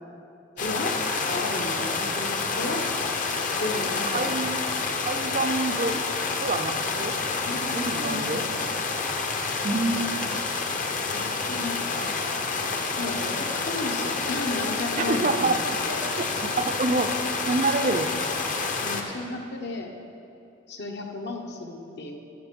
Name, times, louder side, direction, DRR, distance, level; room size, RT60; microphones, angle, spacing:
voice 1, 0.6-0.9 1.2-2.8 3.6-4.3 7.4-8.7 11.0-12.1 13.0-16.0 18.8-19.9 20.7-22.2, left 2 dB, 60° left, 2 dB, 1.1 m, -34 dB
sound 1, 0.6-19.0, left 4 dB, 40° left, 0.8 m, -28 dB
voice 2, 4.1-4.6 5.0-6.0 6.4-7.2 7.7-8.4 9.6-10.5 15.0-15.6 16.4-18.1, right 3 dB, 40° right, 7 dB, 0.5 m, -27 dB
14.5 x 6.7 x 5.3 m, 2.7 s
head